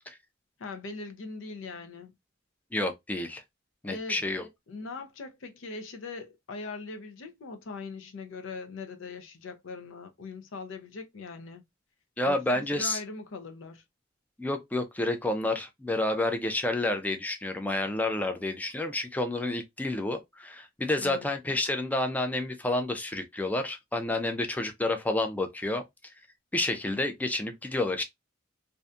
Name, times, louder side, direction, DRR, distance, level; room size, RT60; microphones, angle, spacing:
voice 1, 0.6-2.1 3.8-4.2 4.7-11.6 12.3-13.8 21.0-21.3, left 4 dB, 90° left, 0.5 m, -41 dB
voice 2, 2.7-3.4 3.8-4.5 12.2-13.0 14.4-25.8 26.5-28.0, left 2 dB, 10° left, 0.3 m, -29 dB
2.6 x 2.2 x 2.4 m
head